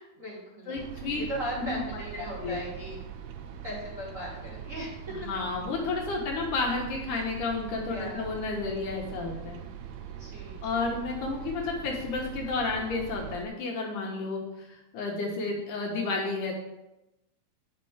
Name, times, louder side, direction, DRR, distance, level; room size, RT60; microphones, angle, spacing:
voice 1, 0.0-3.0 3.6-5.3 7.9-8.3 10.0-10.6, equal, 25° right, -7 dB, 2.9 m, -38 dB
voice 2, 0.7-1.2 1.6-1.8 2.4-2.6 5.3-9.6 10.6-16.5, left 3 dB, 70° left, -1 dB, 2.6 m, -31 dB
sound 1, 0.7-13.4, right 9 dB, 85° right, 1.6 m, -42 dB
9.7 x 6.0 x 5.0 m, 0.95 s
omnidirectional pair, 4.1 m